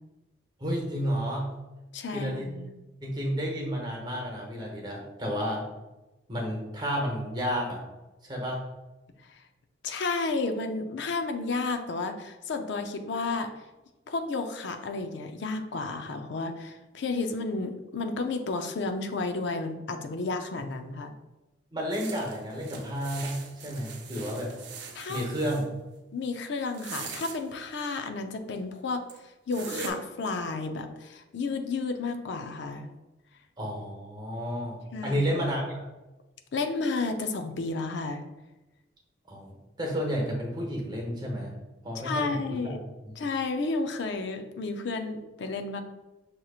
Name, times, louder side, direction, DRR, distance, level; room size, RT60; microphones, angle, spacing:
voice 1, 0.6-1.5 2.1-2.5 3.0-5.6 6.3-7.8 8.2-8.6 21.7-24.5 25.1-25.7 33.6-35.8 39.3-39.5 39.8-41.5 41.8-42.8 43.0-43.2, equal, 20° right, -1 dB, 1.0 m, -31 dB
voice 2, 1.9-2.7 9.3-9.4 9.8-13.5 14.1-21.1 24.9-25.2 26.1-29.0 29.5-32.9 34.9-35.2 36.5-38.2 42.0-42.8 43.2-45.8, left 3 dB, 65° left, 6 dB, 0.5 m, -32 dB
sound 1, 21.9-25.6 26.6-27.4 28.6-28.7 29.1-29.2 29.5-29.9, right 5 dB, 60° right, 0.6 m, -41 dB
6.2 x 2.9 x 2.4 m, 1.0 s
head